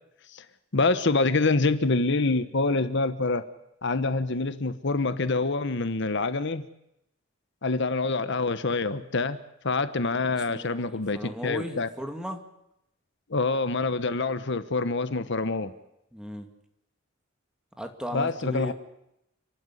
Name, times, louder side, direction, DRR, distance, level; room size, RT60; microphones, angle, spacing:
voice 1, 0.7-3.5 3.8-6.7 7.6-11.9 13.3-15.7 18.1-18.7, left 3 dB, 65° left, 12 dB, 1.1 m, -26 dB
voice 2, 10.3-12.4 16.1-16.5 17.8-18.7, equal, 5° right, 5 dB, 2.4 m, -37 dB
29.5 x 12.0 x 10.0 m, 0.83 s
head